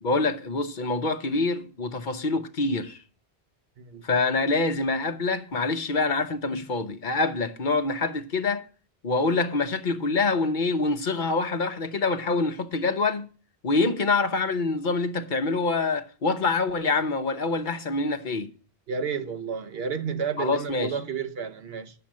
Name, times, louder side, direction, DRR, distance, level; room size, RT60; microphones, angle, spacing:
voice 1, 0.0-3.0 4.0-8.6 9.0-13.3 13.6-18.5 20.4-20.9, left 3 dB, 55° left, 0.9 m, -26 dB
voice 2, 18.9-21.9, right 6 dB, 75° right, 1.1 m, -31 dB
10.0 x 6.8 x 7.4 m
omnidirectional pair, 1.0 m